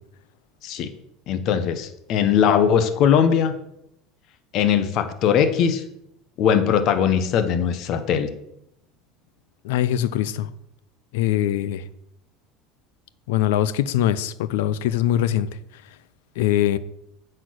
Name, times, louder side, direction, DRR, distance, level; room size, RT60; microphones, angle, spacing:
voice 1, 1.3-3.5 4.5-5.8 6.4-8.3, left 8 dB, 55° left, 1.0 m, -20 dB
voice 2, 9.6-10.5 11.1-11.8 13.3-15.5 16.4-16.8, left 12 dB, 85° left, 0.5 m, -22 dB
8.0 x 4.4 x 6.4 m
supercardioid pair, 120°, 0 cm